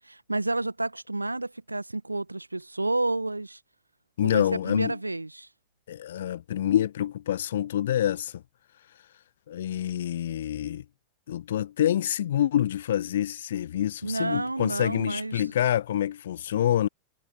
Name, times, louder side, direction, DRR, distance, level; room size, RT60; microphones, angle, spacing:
voice 1, 0.0-3.6 4.2-5.5 14.0-15.5, right 2 dB, 85° right, 0.9 m, -30 dB
voice 2, 4.2-4.9 5.9-8.4 9.5-10.8 11.3-16.9, left 11 dB, 60° left, 0.7 m, -27 dB
figure-of-eight pair, 90°, 0 cm